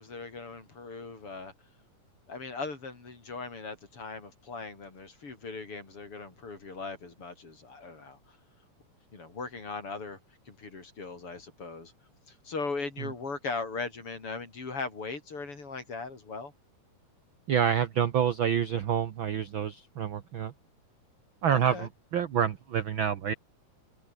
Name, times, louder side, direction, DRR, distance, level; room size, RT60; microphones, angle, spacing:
voice 1, 0.0-1.5 2.3-8.2 9.1-10.2 10.5-11.9 12.3-16.5 21.5-21.9, left 4 dB, 40° left, 5.3 m, -39 dB
voice 2, 17.5-20.5 21.4-23.3, right 8 dB, 75° right, 1.1 m, -28 dB
omnidirectional pair, 3.8 m